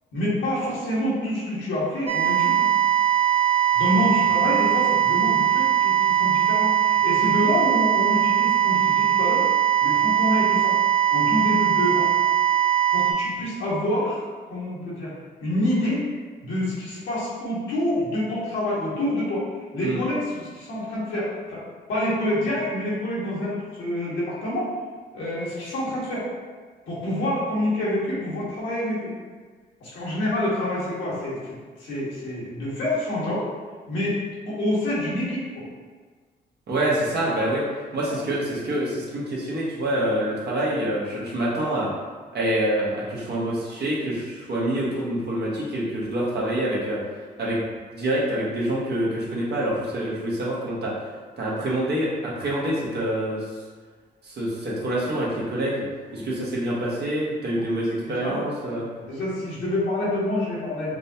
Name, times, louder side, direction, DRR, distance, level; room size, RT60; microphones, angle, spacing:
voice 1, 0.1-2.7 3.7-9.5 9.8-10.7 11.1-12.3 12.9-14.2 14.5-15.1 15.4-16.0 16.4-19.4 19.7-21.6 21.9-24.7 25.1-26.3 26.9-29.1 29.8-33.5 33.9-35.6 38.0-38.2 56.1-56.3 57.5-57.6 58.1-58.4 59.0-60.9, left 1 dB, 80° left, -7 dB, 1.4 m, -27 dB
sound 1, 2.1-13.1, right 10 dB, 30° right, 0.7 m, -20 dB
voice 2, 36.7-37.6 37.9-41.9 42.3-47.0 47.4-47.7 47.9-50.9 51.4-53.4 54.2-55.8 56.1-58.9, right 1 dB, 60° right, -5 dB, 1.2 m, -26 dB
5.1 x 2.2 x 2.8 m, 1.4 s
supercardioid pair, 65°, 19 cm